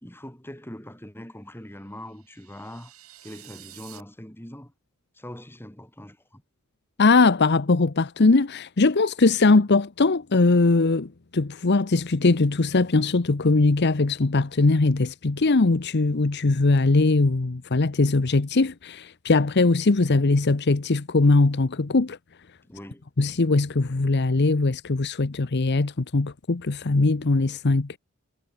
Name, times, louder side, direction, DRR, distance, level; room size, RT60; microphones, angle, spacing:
voice 1, 0.0-2.9 3.2-4.7 5.1-6.4 22.6-23.1, left 1 dB, 10° left, 4.5 m, -42 dB
sound 1, 2.0-4.0, right 13 dB, 85° right, 7.9 m, -49 dB
voice 2, 7.0-22.2 23.2-28.0, left 3 dB, 55° left, 0.8 m, -21 dB
head